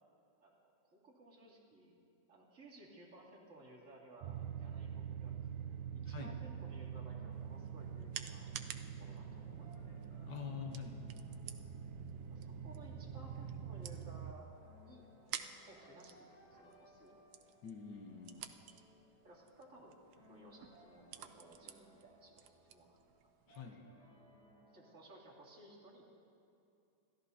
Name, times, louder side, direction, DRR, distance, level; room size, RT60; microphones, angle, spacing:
voice 1, 0.4-2.0 2.3-8.5 9.0-10.0 12.3-14.5 14.8-15.0 15.7-17.2 19.2-20.0 20.3-22.4 22.7-23.0 23.2-23.3 24.7-26.1, right 1 dB, 40° right, -5 dB, 2.8 m, -58 dB
sound 1, 4.2-14.3, right 8 dB, 85° right, 1.3 m, -45 dB
voice 2, 6.1-6.4 10.3-11.1 17.6-18.5 23.5-23.9, left 7 dB, 70° left, 2 dB, 1.6 m, -46 dB
sound 2, 6.1-25.0, left 1 dB, 55° left, 3.5 m, -65 dB
sound 3, 7.3-23.7, right 9 dB, 70° right, 1.1 m, -53 dB
27.5 x 13.5 x 2.8 m, 2.6 s
omnidirectional pair, 2.0 m